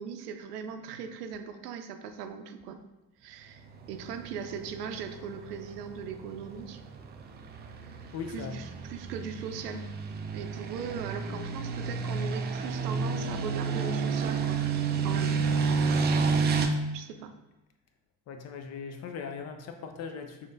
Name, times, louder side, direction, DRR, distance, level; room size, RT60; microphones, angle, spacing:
voice 1, 0.0-2.8 3.2-3.6 3.9-6.8 8.3-9.8 10.3-14.6 15.0-15.4 16.9-17.3, right 6 dB, 75° right, 7 dB, 0.6 m, -39 dB
sound 1, 3.7-16.7, right 5 dB, 25° right, 0.4 m, -31 dB
voice 2, 8.1-8.6 16.0-16.2 18.3-20.5, left 6 dB, 35° left, 6 dB, 0.5 m, -39 dB
6.3 x 2.7 x 2.5 m, 1.1 s
figure-of-eight pair, 60°, 48 cm